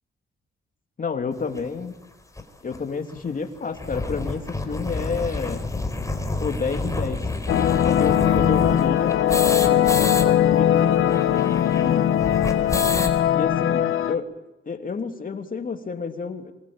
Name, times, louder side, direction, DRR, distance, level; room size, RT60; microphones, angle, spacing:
voice 1, 1.0-1.9 2.6-5.6 6.4-7.3 7.8-12.1 13.3-14.3 14.7-16.5, left 5 dB, 40° left, 5 dB, 3.0 m, -30 dB
sound 1, 1.6-1.7 2.4-2.5 2.7-2.8 3.1-3.2 3.6-10.3 10.5-10.6 10.8-13.2, left 2 dB, 15° left, 4.2 m, -29 dB
sound 2, 7.5-14.2, left 10 dB, 80° left, 1.1 m, -20 dB
26.5 x 21.5 x 8.9 m, 0.96 s
cardioid pair, 90°, 21 cm